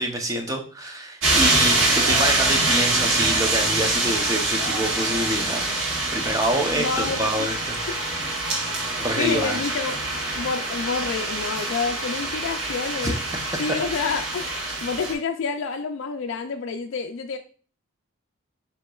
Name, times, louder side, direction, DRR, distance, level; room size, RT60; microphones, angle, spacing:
voice 1, 0.0-5.8 6.1-7.7 9.0-9.6 13.0-13.1, right 1 dB, 15° right, 3 dB, 0.7 m, -26 dB
sound 1, 1.2-15.1, right 2 dB, 75° right, 1.3 m, -25 dB
voice 2, 6.7-7.5 7.9-8.0 8.7-10.0 10.3-13.1 13.6-14.5 14.8-17.4, left 5 dB, 75° left, 4 dB, 0.4 m, -28 dB
7.6 x 2.9 x 2.3 m, 0.39 s
head